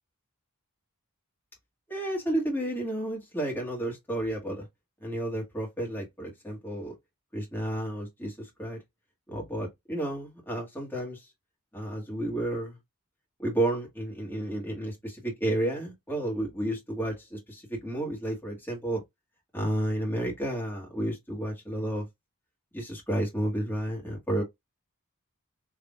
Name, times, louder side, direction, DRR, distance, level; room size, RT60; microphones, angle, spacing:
voice 1, 1.9-4.7 5.0-7.0 7.3-8.8 9.3-11.2 11.7-12.8 13.4-19.0 19.5-22.1 22.7-24.4, right 1 dB, 10° left, 1.8 m, -31 dB
3.7 x 3.1 x 2.5 m
head